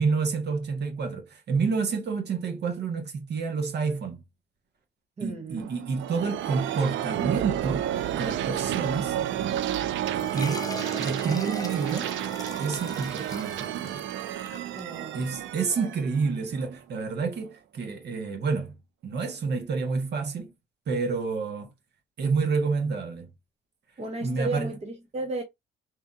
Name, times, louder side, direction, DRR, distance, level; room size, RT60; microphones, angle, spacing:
voice 1, 0.0-4.2 5.2-9.2 10.3-10.7 11.0-12.1 12.6-14.1 15.1-18.8 19.0-20.5 20.9-21.7 22.2-23.3 24.2-24.7, right 5 dB, 55° right, 1.3 m, -29 dB
voice 2, 5.2-5.7 10.1-10.4 14.7-15.3 15.8-15.9 24.0-25.4, right 3 dB, 35° right, 0.8 m, -34 dB
sound 1, 5.6-17.1, right 11 dB, 75° right, 0.4 m, -31 dB
sound 2, 10.2-15.3, left 3 dB, 20° left, 0.7 m, -41 dB
3.4 x 2.9 x 2.5 m
cardioid pair, 90°, 20 cm